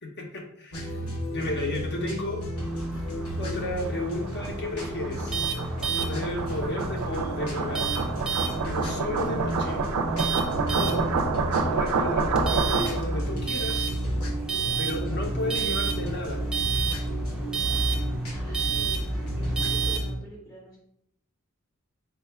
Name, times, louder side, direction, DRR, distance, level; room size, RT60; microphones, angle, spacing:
voice 1, 0.0-0.9 1.3-2.4 3.4-5.5 6.1-7.9 8.6-9.8 10.7-11.1 11.7-13.9 14.8-16.4, left 1 dB, 50° left, 2 dB, 0.8 m, -33 dB
sound 1, 0.7-20.1, right 1 dB, 80° left, 1.1 m, -32 dB
voice 2, 0.8-1.3 8.4-8.7 18.3-19.1 19.4-20.8, right 2 dB, 15° left, -4 dB, 0.7 m, -47 dB
sound 2, 2.6-20.0, right 6 dB, 5° right, 0.4 m, -33 dB
sound 3, 3.2-13.2, right 4 dB, 85° right, 0.4 m, -29 dB
4.5 x 2.4 x 3.4 m, 0.73 s
head